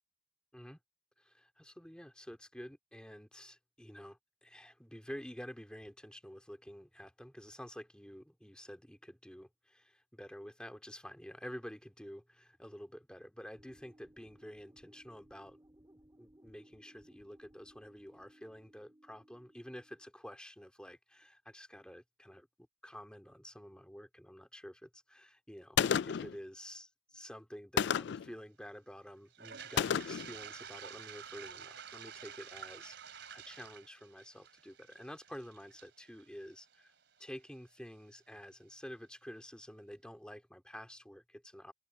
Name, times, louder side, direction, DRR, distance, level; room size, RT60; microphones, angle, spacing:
voice 1, 1.2-15.6 16.2-25.8 26.0-36.9 37.2-41.7, equal, 5° left, 2.7 m, -50 dB
sound 1, 13.5-20.1, right 1 dB, 20° right, 3.2 m, -63 dB
Gunshot gunfire, 25.8-26.4 27.8-28.3 29.8-30.3, left 8 dB, 65° left, 0.3 m, -31 dB
Toilet flush, 29.3-37.2, right 7 dB, 65° right, 3.3 m, -50 dB
open air
head